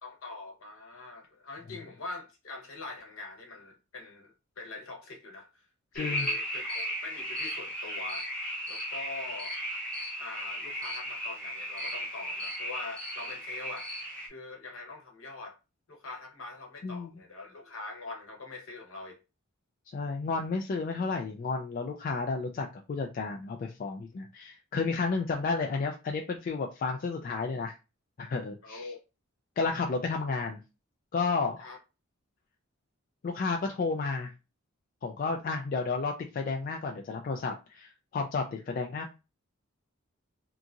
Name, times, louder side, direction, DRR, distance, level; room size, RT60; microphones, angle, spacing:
voice 1, 0.0-5.7 5.9-8.3 8.7-9.6 10.2-13.9 14.3-15.6 15.9-19.2 28.6-29.0 31.6-31.8 38.5-38.6, left 3 dB, 70° left, 1.0 m, -43 dB
voice 2, 5.9-6.3 16.8-17.1 19.9-27.8 28.2-28.9 29.6-30.6 31.1-31.6 33.2-34.3 35.0-39.1, left 4 dB, 40° left, 0.3 m, -32 dB
sound 1, 6.0-14.3, equal, 5° left, 0.8 m, -36 dB
2.8 x 2.5 x 2.4 m
head